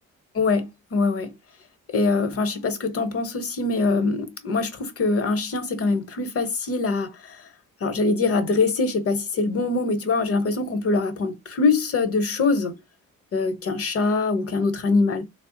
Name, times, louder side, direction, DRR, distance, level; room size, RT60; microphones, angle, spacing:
voice 1, 0.3-1.3 1.9-7.4 7.8-12.7 13.3-15.2, left 3 dB, 50° left, 0.9 m, -23 dB
3.3 x 2.0 x 3.7 m
cardioid pair, 90°, 30 cm